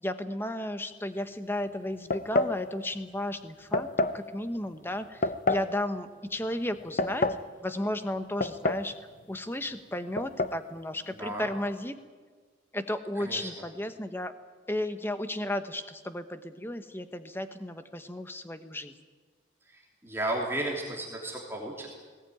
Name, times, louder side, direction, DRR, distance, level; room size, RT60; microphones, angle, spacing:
voice 1, 0.0-3.9 4.1-7.3 7.6-8.9 9.3-12.0 12.7-14.3 14.7-18.9, left 1 dB, 10° left, 9 dB, 1.0 m, -34 dB
sound 1, 2.1-2.6 3.7-4.2 5.2-5.7 6.7-7.5 8.4-8.9 9.2-9.3 10.2-10.6, left 2 dB, 45° left, 0.7 m, -27 dB
voice 2, 13.2-13.5 19.7-21.9, right 1 dB, 15° right, -2 dB, 3.0 m, -34 dB
20.0 x 17.5 x 9.3 m, 1.5 s
head